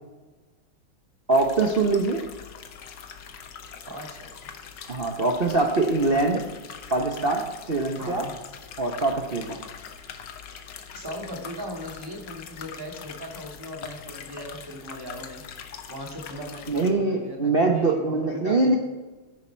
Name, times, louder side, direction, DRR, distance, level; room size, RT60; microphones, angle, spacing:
sound 1, 1.3-16.9, left 7 dB, 65° left, 1.5 m, -42 dB
voice 1, 1.3-2.2 4.9-6.4 6.9-8.3 8.8-9.6 16.7-18.8, right 3 dB, 40° right, 1 dB, 0.8 m, -23 dB
voice 2, 3.9-4.5 8.0-8.3 10.9-15.4 15.9-18.8, equal, 10° right, 0 dB, 1.9 m, -38 dB
13.5 x 10.5 x 4.5 m, 1.2 s
omnidirectional pair, 2.2 m